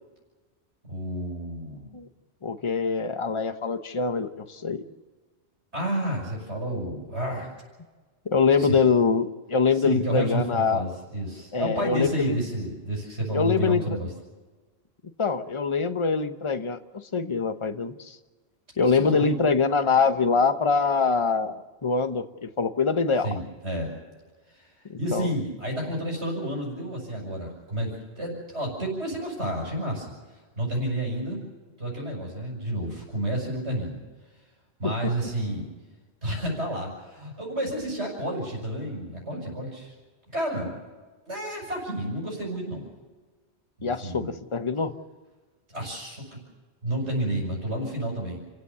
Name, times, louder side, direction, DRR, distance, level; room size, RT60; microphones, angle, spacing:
voice 1, 0.9-1.9 5.7-7.5 8.6-8.7 9.7-14.1 18.9-19.3 23.2-23.9 24.5-24.7 25.0-30.1 30.6-31.4 31.8-34.0 34.8-35.7 36.2-39.9 40.3-40.8 41.2-42.9 43.8-44.3 45.7-46.4 46.8-48.4, right 1 dB, 75° right, -2 dB, 6.1 m, -30 dB
voice 2, 2.4-4.8 8.3-10.8 11.5-12.4 13.3-14.0 15.2-18.2 18.8-23.3 24.9-25.3 34.8-35.1 43.8-44.9, left 5 dB, 30° left, 10 dB, 1.0 m, -24 dB
28.0 x 16.0 x 7.0 m, 1.3 s
omnidirectional pair, 1.1 m